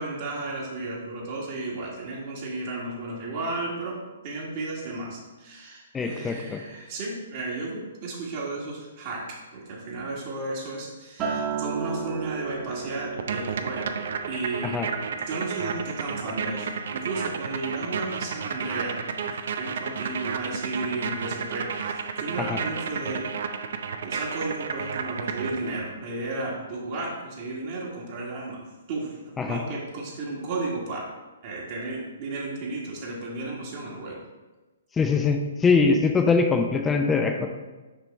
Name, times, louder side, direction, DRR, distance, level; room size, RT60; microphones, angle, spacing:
voice 1, 0.0-4.0 4.2-23.3 24.0-31.1 31.4-34.2, right 2 dB, 45° right, -4 dB, 1.7 m, -34 dB
voice 2, 5.9-6.6 14.6-14.9 22.4-22.6 29.4-29.6 35.0-37.5, left 4 dB, 15° left, 4 dB, 0.5 m, -23 dB
Acoustic guitar, 11.2-15.6 16.0-16.4, right 6 dB, 30° right, 1.3 m, -34 dB
sound 1, 13.2-26.0, right 6 dB, 65° right, 0.5 m, -32 dB
6.2 x 5.0 x 3.3 m, 1.2 s
hypercardioid pair, 130°, 0 cm